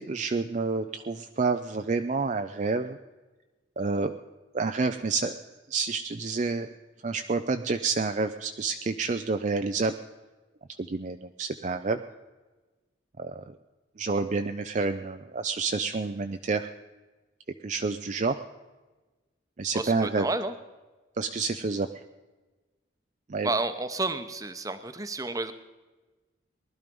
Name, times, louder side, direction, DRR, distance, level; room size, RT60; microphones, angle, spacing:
voice 1, 0.0-3.0 3.8-4.1 4.5-5.4 5.7-6.7 7.0-9.9 10.8-12.0 13.2-13.4 14.0-16.7 17.6-18.4 19.6-20.3 21.2-21.9 23.3-23.5, right 4 dB, 40° right, 7 dB, 0.4 m, -28 dB
voice 2, 19.7-20.5 23.4-25.5, right 2 dB, 20° right, 10 dB, 0.8 m, -30 dB
19.5 x 12.0 x 5.3 m, 1.2 s
head